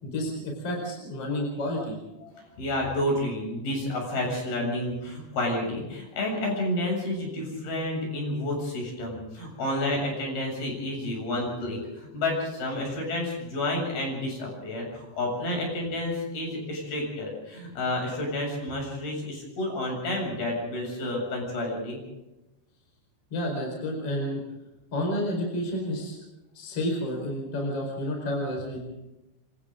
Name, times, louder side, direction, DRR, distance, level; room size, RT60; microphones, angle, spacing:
voice 1, 0.0-2.0 23.3-24.4 24.9-26.2 26.5-28.8, left 1 dB, 35° left, 0 dB, 5.5 m, -30 dB
voice 2, 2.2-22.0, left 1 dB, 60° left, 0 dB, 9.2 m, -30 dB
27.5 x 25.0 x 3.9 m, 0.99 s
omnidirectional pair, 5.0 m